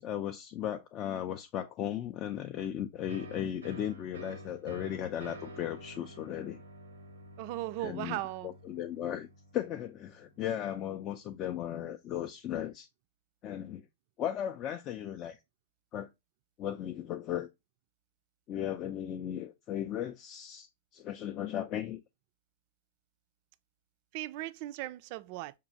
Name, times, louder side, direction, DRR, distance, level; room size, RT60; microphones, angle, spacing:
voice 1, 0.0-6.6 7.8-8.2 8.6-9.3 9.5-12.9 13.4-13.8 14.2-15.4 15.9-16.1 16.6-17.5 18.5-20.7 20.9-22.0, left 10 dB, 35° left, 0.4 m, -36 dB
sound 1, 3.1-10.6, equal, 90° right, 0.6 m, -49 dB
voice 2, 7.4-8.5 24.1-25.5, right 16 dB, 50° right, 0.3 m, -37 dB
5.3 x 2.4 x 2.6 m
hypercardioid pair, 115°, 0 cm